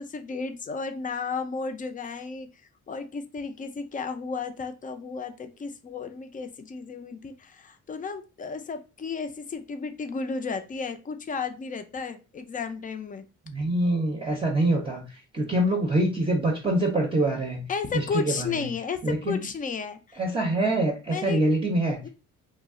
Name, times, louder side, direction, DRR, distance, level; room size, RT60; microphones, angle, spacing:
voice 1, 0.0-2.5 2.9-13.2 17.7-20.2 21.1-21.5 22.0-22.1, left 5 dB, 25° left, 8 dB, 0.4 m, -33 dB
voice 2, 13.5-15.1 15.3-17.7 17.9-18.7 19.0-19.4 20.2-22.0, right 1 dB, 20° right, 0 dB, 0.6 m, -25 dB
2.3 x 2.0 x 3.5 m, 0.32 s
cardioid pair, 90°, 30 cm